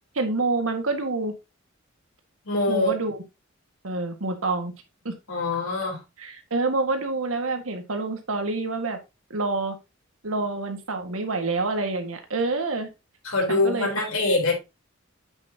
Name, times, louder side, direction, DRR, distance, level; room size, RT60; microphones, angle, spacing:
voice 1, 0.1-1.3 2.7-3.2 3.8-4.7 5.0-5.1 6.2-9.0 9.3-9.7 10.2-12.9 13.5-14.0, right 3 dB, 85° right, 1.7 m, -27 dB
voice 2, 2.5-2.9 5.3-6.0 13.2-14.5, left 2 dB, 85° left, 3.6 m, -24 dB
8.2 x 7.1 x 2.8 m
head